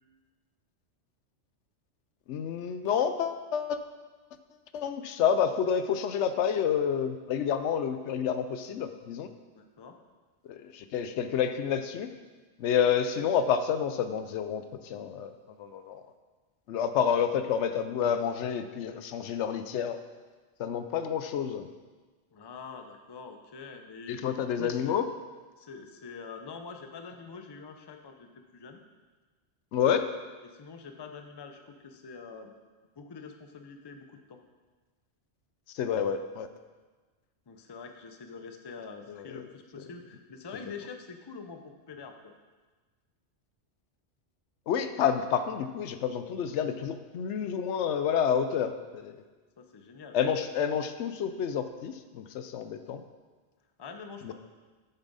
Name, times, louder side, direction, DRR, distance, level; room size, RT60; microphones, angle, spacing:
voice 1, 2.3-3.8 4.7-9.3 10.5-12.1 12.6-15.3 15.6-16.0 16.7-20.0 20.6-21.7 24.1-25.0 29.7-30.1 35.7-36.5 39.1-39.4 44.7-49.2 50.1-53.0 54.2-54.3, left 8 dB, 80° left, 9 dB, 0.9 m, -29 dB
voice 2, 9.5-10.0 22.3-25.0 25.6-28.8 30.4-32.5 33.0-34.4 37.5-42.3 49.6-50.2 53.8-54.3, left 5 dB, 30° left, 5 dB, 0.5 m, -45 dB
8.2 x 7.1 x 4.0 m, 1.3 s
omnidirectional pair, 1.2 m